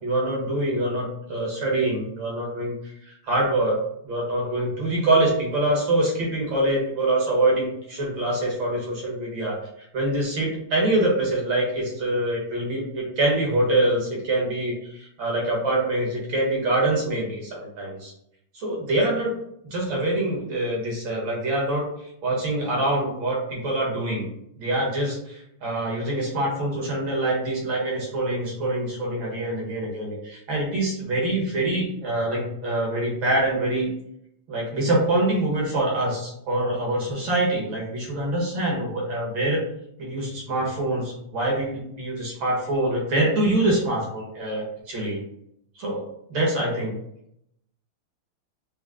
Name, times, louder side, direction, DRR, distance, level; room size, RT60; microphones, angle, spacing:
voice 1, 0.0-18.1 18.5-19.3 19.6-24.3 24.6-33.9 34.5-39.6 40.0-45.2 45.8-46.0 46.3-47.0, right 1 dB, 70° right, -3 dB, 2.2 m, -25 dB
5.1 x 2.2 x 3.7 m, 0.73 s
omnidirectional pair, 2.3 m